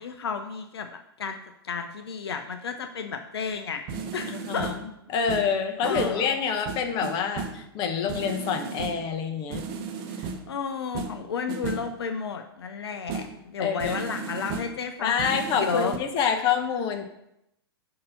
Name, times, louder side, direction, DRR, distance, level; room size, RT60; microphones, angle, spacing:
voice 1, 0.0-1.4 1.6-3.8 4.1-4.7 5.8-6.4 10.1-15.2 15.6-15.9, left 5 dB, 70° left, 6 dB, 0.5 m, -32 dB
sound 1, 3.5-3.6 3.9-4.9 5.3-6.3 6.7-7.7 8.1-9.1 9.5-10.6 10.9-12.0 13.1-13.4 13.8-14.8 15.2-16.0, right 5 dB, 35° right, 0.7 m, -35 dB
voice 2, 4.3-4.7 5.1-9.6 13.6-14.0 15.0-17.1, left 6 dB, 35° left, 4 dB, 0.8 m, -27 dB
6.5 x 2.9 x 5.5 m, 0.81 s
figure-of-eight pair, 110°, 13 cm